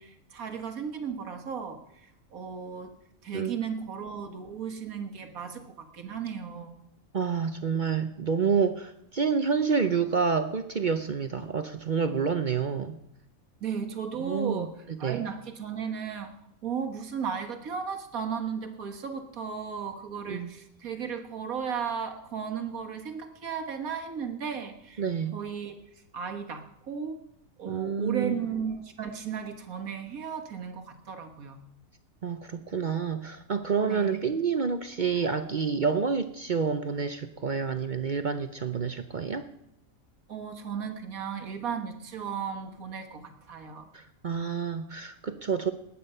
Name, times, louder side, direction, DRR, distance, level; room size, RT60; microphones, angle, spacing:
voice 1, 0.0-2.9 3.2-6.8 13.6-14.7 15.0-16.3 16.6-25.0 25.3-25.8 26.1-27.2 27.6-31.6 33.9-34.2 40.3-43.9, right 7 dB, 75° right, 5 dB, 1.8 m, -35 dB
voice 2, 7.1-13.0 14.2-14.7 15.0-15.2 20.3-20.5 25.0-25.4 27.6-28.3 32.2-39.5 43.9-45.7, right 6 dB, 45° right, 9 dB, 0.6 m, -28 dB
19.5 x 8.6 x 5.5 m, 0.80 s
omnidirectional pair, 1.5 m